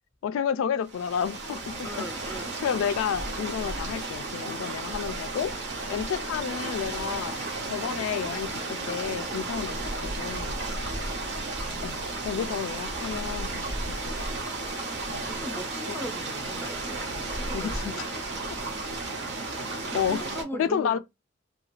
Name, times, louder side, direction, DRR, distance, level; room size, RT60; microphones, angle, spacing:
voice 1, 0.2-1.9 2.6-7.4 7.6-10.6 11.8-14.3 15.1-15.2 15.9-16.0 17.5-18.1 19.9-20.2 20.6-21.0, left 8 dB, 90° left, 0.3 m, -31 dB
sound 1, 0.9-20.4, right 2 dB, 60° right, 0.8 m, -33 dB
voice 2, 1.8-2.6 10.8-11.2 15.2-18.2 18.6-21.0, left 1 dB, 10° left, 0.5 m, -41 dB
2.4 x 2.3 x 3.0 m
head